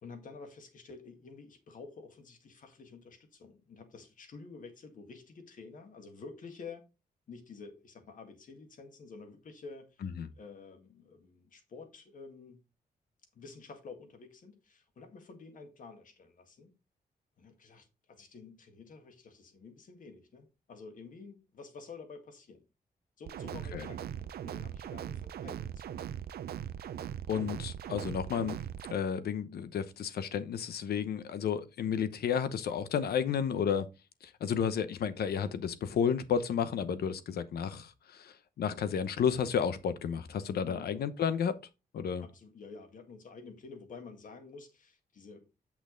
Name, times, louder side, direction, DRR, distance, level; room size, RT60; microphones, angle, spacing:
voice 1, 0.0-6.8 7.3-10.1 10.4-12.6 13.3-16.7 17.4-22.6 23.2-26.0 40.6-40.9 42.2-45.5, left 4 dB, 55° left, 1.8 m, -50 dB
sound 1, 23.3-28.9, right 9 dB, 85° right, 0.6 m, -40 dB
voice 2, 27.3-28.6 28.9-33.9 34.2-41.5 41.9-42.2, left 7 dB, 90° left, 0.9 m, -32 dB
8.6 x 5.9 x 3.9 m
wide cardioid pair, 170°, 16 cm